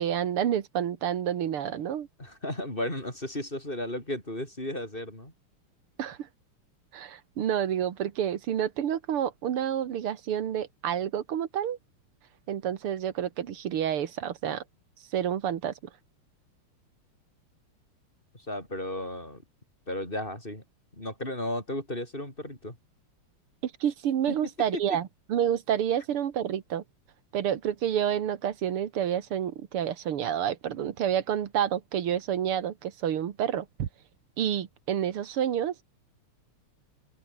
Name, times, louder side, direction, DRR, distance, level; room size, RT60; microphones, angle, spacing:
voice 1, 0.0-2.1 6.0-6.3 6.9-11.8 12.5-14.6 15.1-15.7 23.6-26.8 27.3-33.9 34.4-35.8, right 9 dB, 80° right, 2.4 m, -29 dB
voice 2, 2.2-5.3 18.3-19.4 19.9-20.6 20.9-22.8 24.3-24.4 24.7-24.8, left 1 dB, 20° left, 7.4 m, -34 dB
omnidirectional pair, 2.4 m